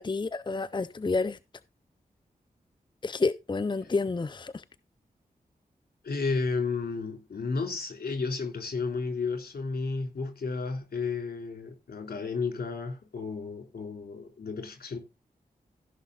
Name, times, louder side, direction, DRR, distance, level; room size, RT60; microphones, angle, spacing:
voice 1, 0.0-1.4 3.0-4.6, left 3 dB, 30° left, 0.6 m, -29 dB
voice 2, 6.0-15.0, left 4 dB, 80° left, 3.5 m, -32 dB
15.5 x 5.9 x 4.0 m
cardioid pair, 50°, 16 cm